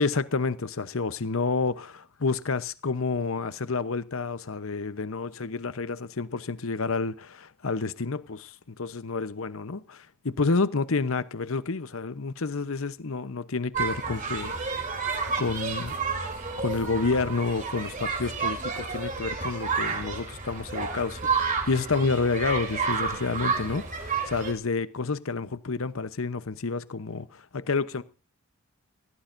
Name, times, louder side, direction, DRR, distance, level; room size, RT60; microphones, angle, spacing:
voice 1, 0.0-14.5 15.4-16.0 16.6-28.0, left 4 dB, 65° left, 0.9 m, -29 dB
sound 1, 13.7-24.5, right 5 dB, 35° right, 3.3 m, -30 dB
21.0 x 16.0 x 2.6 m
head